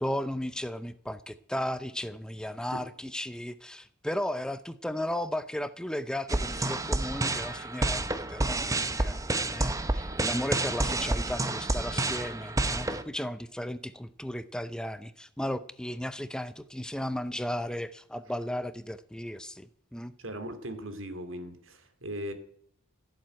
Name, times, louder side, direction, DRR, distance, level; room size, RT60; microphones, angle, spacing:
voice 1, 0.0-9.2 9.5-20.1, left 1 dB, 5° left, 13 dB, 0.6 m, -35 dB
sound 1, 6.3-13.0, right 2 dB, 15° right, 0.9 m, -29 dB
voice 2, 20.2-22.3, equal, 80° right, 9 dB, 2.6 m, -38 dB
16.0 x 7.7 x 9.0 m, 0.64 s
head